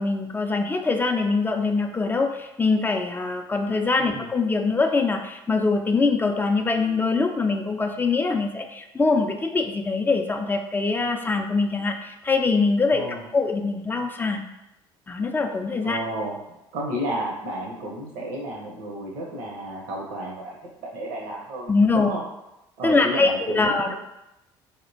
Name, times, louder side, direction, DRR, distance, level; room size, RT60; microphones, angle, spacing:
voice 1, 0.0-14.4 15.1-16.0 21.7-22.1 22.8-23.9, left 3 dB, 15° left, 5 dB, 0.4 m, -23 dB
voice 2, 4.0-4.3 12.9-13.3 15.8-20.5 20.8-22.2 22.8-23.7, right 1 dB, 70° right, -2 dB, 0.7 m, -32 dB
4.1 x 2.1 x 2.6 m, 0.90 s
hypercardioid pair, 60°, 12 cm